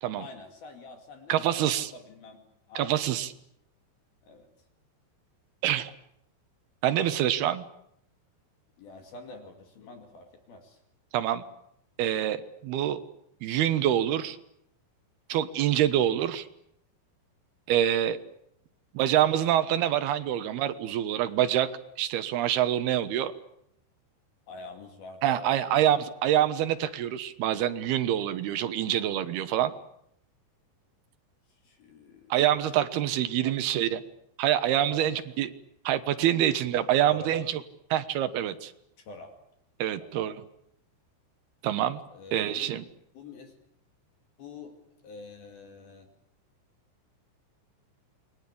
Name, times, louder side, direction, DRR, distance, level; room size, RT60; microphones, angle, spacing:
voice 1, 0.1-1.6 1.9-2.4 2.7-2.9 3.2-3.3 4.2-4.5 8.8-10.8 24.5-26.0 31.6-32.3 33.4-33.7 34.9-35.4 37.1-37.3 39.0-39.4 40.0-40.2 42.1-42.8 43.1-43.5 44.4-44.8 45.0-46.1, left 3 dB, 55° left, 5 dB, 4.0 m, -46 dB
voice 2, 1.3-1.9 2.8-3.3 5.6-5.9 6.8-7.7 11.1-11.4 12.0-13.0 13.4-14.4 15.3-16.5 17.7-18.2 18.9-21.7 22.0-23.3 25.2-29.7 32.3-34.0 34.4-35.5 35.8-37.6 37.9-38.7 39.8-40.4 41.6-42.0 42.3-42.8, right 11 dB, 70° right, 11 dB, 2.7 m, -26 dB
28.5 x 22.5 x 8.6 m, 0.76 s
omnidirectional pair, 5.6 m